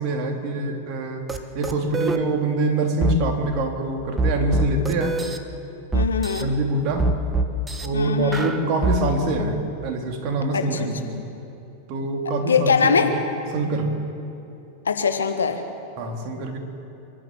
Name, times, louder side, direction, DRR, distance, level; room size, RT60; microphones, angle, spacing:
voice 1, 0.0-5.2 6.4-7.1 7.8-11.2 11.9-13.1 13.5-13.9 16.0-16.6, right 2 dB, 40° right, 3 dB, 3.4 m, -25 dB
sound 1, 1.3-1.4 1.6-2.2 3.0-3.2 4.2-5.4 5.9-6.4 7.0-7.9 8.3-9.0, right 2 dB, 15° right, 1.4 m, -23 dB
voice 2, 5.9-6.5 7.9-8.5 10.5-10.9 12.5-13.1 14.9-15.6, left 5 dB, 70° left, 6 dB, 1.6 m, -22 dB
28.0 x 12.5 x 7.9 m, 2.7 s
figure-of-eight pair, 90°, 0 cm